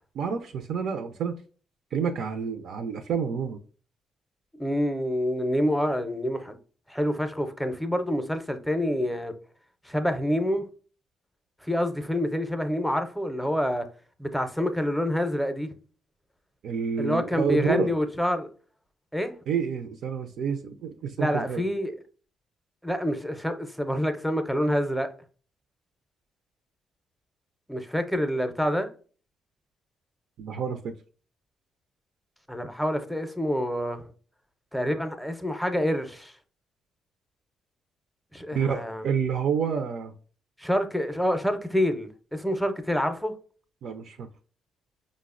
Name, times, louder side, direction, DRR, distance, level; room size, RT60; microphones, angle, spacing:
voice 1, 0.1-1.4 1.9-3.6 16.6-17.9 19.5-21.6 30.4-30.9 38.5-40.1 43.8-44.3, right 6 dB, 70° right, 0.4 m, -29 dB
voice 2, 4.6-6.6 6.9-9.3 9.9-10.7 11.6-13.8 14.2-15.7 17.0-18.5 19.1-19.3 21.2-21.9 22.8-25.1 27.7-28.9 32.5-34.0 34.7-36.3 38.3-39.0 40.6-43.3, equal, ahead, 0.5 m, -27 dB
5.0 x 2.0 x 2.4 m
cardioid pair, 90°, 0 cm